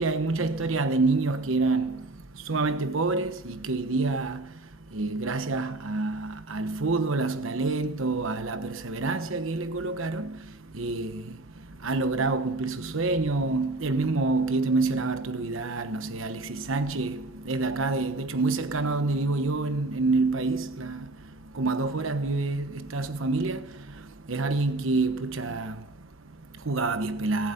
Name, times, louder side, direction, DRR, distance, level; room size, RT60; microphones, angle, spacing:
voice 1, 0.0-27.5, right 3 dB, 80° right, 1.1 m, -28 dB
18.5 x 8.2 x 8.3 m
head